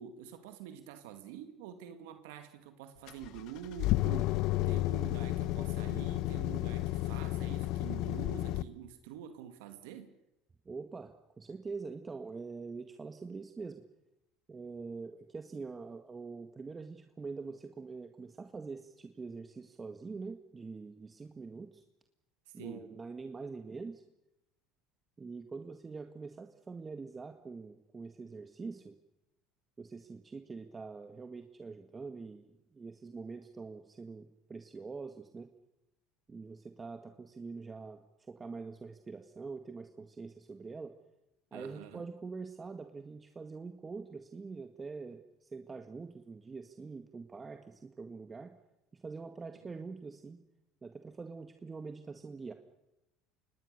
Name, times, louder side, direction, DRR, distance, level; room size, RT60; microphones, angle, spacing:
voice 1, 0.0-10.1 22.5-23.0 41.5-42.0, right 9 dB, 80° right, 2.0 m, -47 dB
sound 1, 3.1-8.6, left 16 dB, 65° left, 0.8 m, -32 dB
voice 2, 10.7-13.8 14.5-21.8 22.5-24.0 25.2-29.0 29.8-35.5 36.3-40.9 41.5-48.5 48.9-50.4 50.8-52.5, right 4 dB, 25° right, 1.7 m, -44 dB
25.5 x 19.5 x 6.7 m
supercardioid pair, 90°, 0 cm